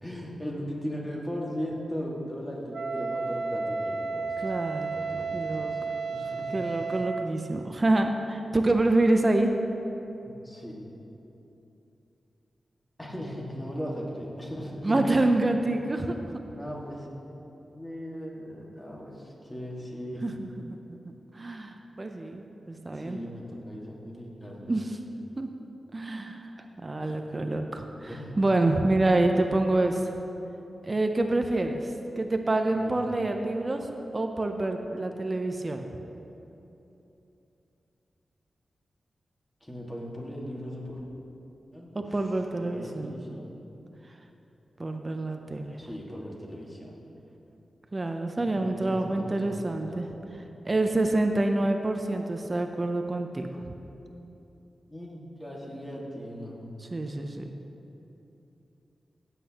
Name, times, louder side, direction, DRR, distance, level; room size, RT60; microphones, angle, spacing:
voice 1, 0.0-4.5 4.9-6.7 10.2-10.9 13.0-15.0 15.8-16.1 16.5-17.1 17.7-20.3 22.9-24.9 28.1-28.4 32.7-33.0 39.6-41.1 41.7-42.1 42.6-43.5 45.8-47.0 48.4-50.4 54.9-56.6, equal, 15° left, -3 dB, 1.8 m, -38 dB
Wind instrument woodwind instrument, 2.7-7.4, right 4 dB, 75° right, 0.4 m, -32 dB
voice 2, 4.4-5.0 5.3-5.7 6.5-9.5 14.8-16.2 20.2-20.8 21.3-23.2 24.6-25.0 25.4-25.5 25.9-30.1 30.8-33.9 34.1-36.0 41.9-43.2 44.8-45.8 47.9-50.1 50.6-53.5 56.8-57.5, right 2 dB, 30° right, 5 dB, 0.6 m, -27 dB
16.0 x 8.3 x 2.9 m, 2.9 s
wide cardioid pair, 85°, 0 cm